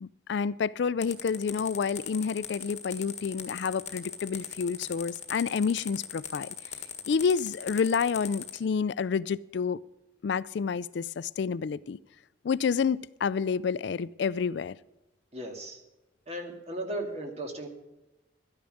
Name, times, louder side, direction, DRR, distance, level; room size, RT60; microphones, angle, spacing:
voice 1, 0.0-6.5 7.1-9.8 10.2-12.0 12.4-14.8, left 6 dB, 65° left, 0.4 m, -29 dB
sound 1, 1.0-8.6, left 8 dB, 35° left, 1.5 m, -39 dB
voice 2, 15.3-15.8 16.3-17.7, right 1 dB, 35° right, 2.2 m, -36 dB
12.5 x 10.5 x 6.5 m
head